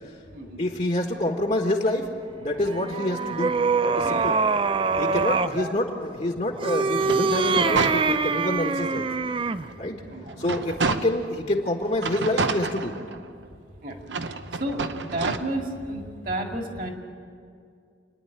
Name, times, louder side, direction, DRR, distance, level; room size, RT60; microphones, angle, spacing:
voice 1, 0.6-2.1 2.4-3.5 3.8-4.4 4.8-9.1 9.8-10.0 10.4-13.0, left 1 dB, 40° left, 1 dB, 1.4 m, -27 dB
sound 1, 2.6-5.6 6.5-9.7, right 4 dB, 30° right, 0.4 m, -24 dB
voice 2, 4.0-4.8 5.6-5.7 10.1-10.3 13.8-14.0 14.2-16.9, right 1 dB, 50° right, 2 dB, 2.3 m, -32 dB
sound 2, 6.9-8.6 9.1-9.2 9.6-11.4 12.0-13.5 14.0-15.4, right 4 dB, 80° right, 0.9 m, -30 dB
28.0 x 10.5 x 9.0 m, 2.3 s
head